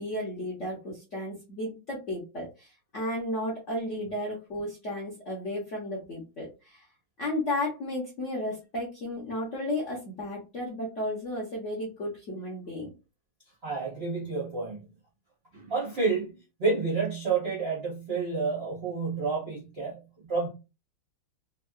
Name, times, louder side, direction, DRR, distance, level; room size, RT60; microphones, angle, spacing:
voice 1, 0.0-6.9 7.2-12.9, left 1 dB, 60° left, -3 dB, 0.7 m, -33 dB
voice 2, 13.6-14.8 15.5-16.3 16.6-20.5, right 4 dB, 60° right, -4 dB, 0.6 m, -29 dB
3.5 x 2.3 x 2.3 m, 0.29 s
omnidirectional pair, 2.3 m